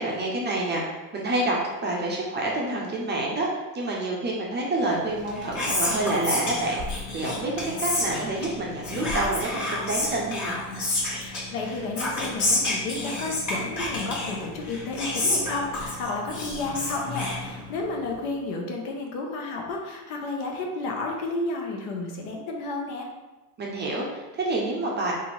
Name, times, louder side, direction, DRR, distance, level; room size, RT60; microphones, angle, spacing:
voice 1, 0.0-10.6 23.6-25.1, right 2 dB, 20° right, -3 dB, 0.6 m, -28 dB
Whispering, 5.1-18.0, left 2 dB, 40° left, 1.3 m, -30 dB
voice 2, 11.2-23.1, left 3 dB, 60° left, 1 dB, 0.9 m, -32 dB
2.8 x 2.7 x 4.2 m, 1.1 s
supercardioid pair, 110°, 48 cm